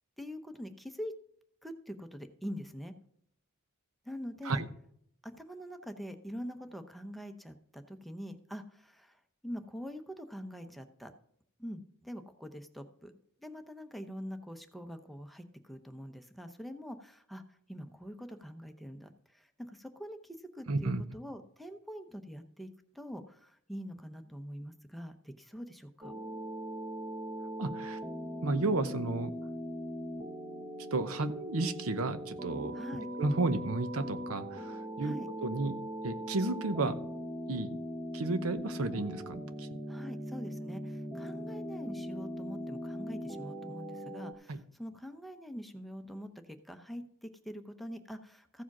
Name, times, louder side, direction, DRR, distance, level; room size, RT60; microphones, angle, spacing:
voice 1, 0.2-1.1 1.6-2.9 4.0-4.6 5.2-11.1 11.6-13.1 13.4-26.1 32.7-33.1 35.0-35.3 39.9-48.6, equal, ahead, 8 dB, 0.7 m, -44 dB
voice 2, 20.7-21.0 27.6-28.0 28.4-29.3 30.9-32.8 33.2-35.2 35.4-35.7 36.0-37.0 37.5-37.8 38.1-39.7 44.5-44.6, right 2 dB, 80° right, 11 dB, 0.8 m, -32 dB
sound 1, 26.0-44.3, equal, 20° right, 1.0 m, -40 dB
14.5 x 5.0 x 6.0 m, 0.68 s
head